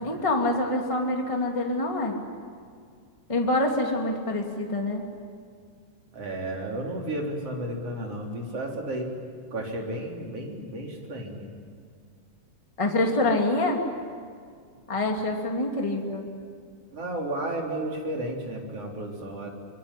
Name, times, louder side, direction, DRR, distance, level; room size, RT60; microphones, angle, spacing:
voice 1, 0.0-2.2 3.3-5.0 12.8-13.8 14.9-16.2, left 2 dB, 10° left, 1 dB, 2.4 m, -26 dB
voice 2, 6.1-9.1 9.5-11.5 16.9-19.5, right 1 dB, 50° right, 0 dB, 4.6 m, -33 dB
24.5 x 23.0 x 9.9 m, 2.1 s
omnidirectional pair, 3.6 m